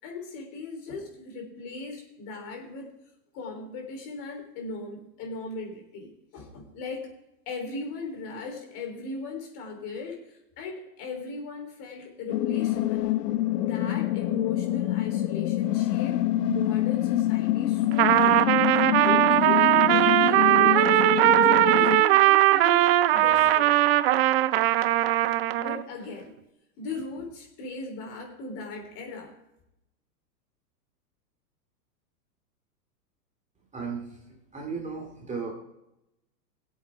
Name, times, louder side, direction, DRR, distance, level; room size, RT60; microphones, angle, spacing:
voice 1, 0.0-2.9 3.3-7.1 7.4-13.1 13.5-21.0 21.4-23.8 25.6-26.4 26.8-29.3, left 3 dB, 45° left, 2 dB, 3.5 m, -38 dB
sound 1, 12.3-22.0, left 15 dB, 70° left, 0.6 m, -26 dB
Trumpet, 17.9-25.8, right 15 dB, 40° right, 0.4 m, -20 dB
voice 2, 33.7-34.0 34.5-35.5, right 5 dB, 15° right, 0 dB, 2.3 m, -34 dB
19.0 x 8.1 x 3.5 m, 0.87 s
hypercardioid pair, 120°, 50 cm